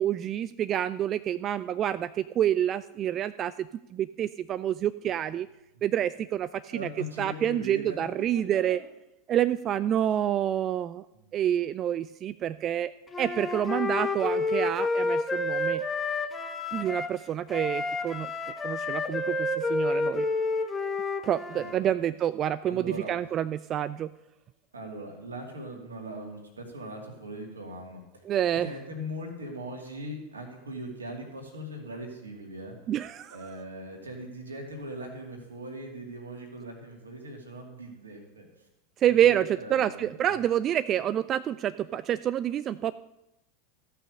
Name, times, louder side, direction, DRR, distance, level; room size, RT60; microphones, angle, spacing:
voice 1, 0.0-5.5 5.8-6.9 7.2-8.8 9.3-11.0 11.3-12.9 13.2-15.8 16.7-18.3 18.6-20.3 21.2-24.1 28.3-28.7 32.9-33.6 39.0-42.9, right 10 dB, 35° right, 14 dB, 0.3 m, -28 dB
voice 2, 6.7-8.8 9.6-9.9 11.1-11.3 21.5-22.0 22.7-23.1 24.7-28.2 28.6-32.8 33.3-38.5 39.0-40.3, right 1 dB, 80° right, 2 dB, 2.4 m, -40 dB
Wind instrument woodwind instrument, 13.1-17.2 17.5-21.7, left 3 dB, 20° left, 1.0 m, -29 dB
14.0 x 5.8 x 6.6 m, 0.93 s
figure-of-eight pair, 85°, 0 cm